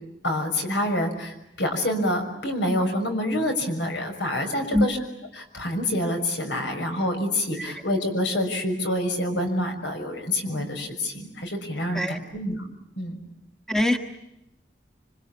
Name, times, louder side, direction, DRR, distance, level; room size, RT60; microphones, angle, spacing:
voice 1, 0.2-5.0 5.3-12.7 13.0-13.2, left 1 dB, 80° left, 5 dB, 6.2 m, -27 dB
voice 2, 4.7-4.9 7.6-7.7 11.9-12.2 13.7-14.0, left 1 dB, 5° left, 5 dB, 1.3 m, -22 dB
26.5 x 26.0 x 8.6 m, 0.84 s
head